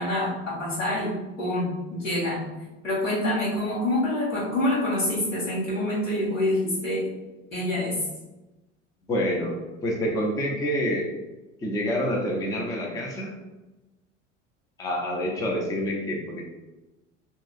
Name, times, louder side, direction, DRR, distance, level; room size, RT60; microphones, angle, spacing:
voice 1, 0.0-2.4 2.8-7.0 7.5-7.9, left 1 dB, 85° left, -8 dB, 1.3 m, -26 dB
voice 2, 9.1-11.1 11.6-13.3 14.8-16.4, equal, 10° left, -1 dB, 0.4 m, -27 dB
3.0 x 2.7 x 2.5 m, 1.1 s
figure-of-eight pair, 70°, 38 cm